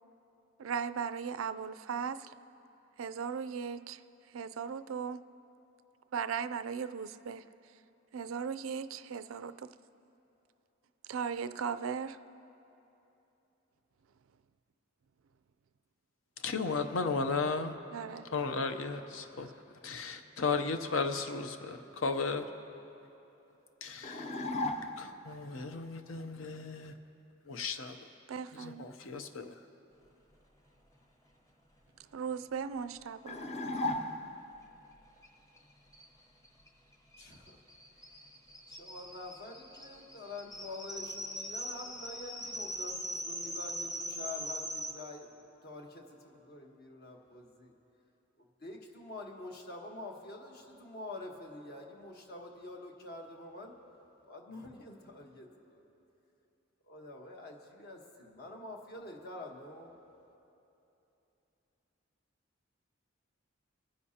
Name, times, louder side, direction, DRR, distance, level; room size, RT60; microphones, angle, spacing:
voice 1, 0.6-2.3 3.0-4.0 4.3-5.2 6.1-7.4 8.1-9.7 11.1-12.2 17.9-18.3 28.3-28.9 32.1-33.4, right 6 dB, 85° right, 12 dB, 0.4 m, -37 dB
voice 2, 16.4-17.7 18.3-19.5 19.8-22.4 23.8-24.5 25.0-26.9 27.5-28.1 28.5-29.6, left 4 dB, 75° left, 8 dB, 0.7 m, -35 dB
sound 1, 24.0-25.2 33.3-34.6, left 2 dB, 35° left, 0.6 m, -35 dB
sound 2, 35.2-35.3 35.6-35.7 35.9-44.9, equal, 15° left, 0.9 m, -41 dB
voice 3, 37.2-37.6 38.7-47.7 48.4-53.8 54.2-55.9 56.8-60.0, left 2 dB, 50° left, 1 dB, 1.2 m, -47 dB
23.5 x 10.0 x 2.8 m, 3.0 s
head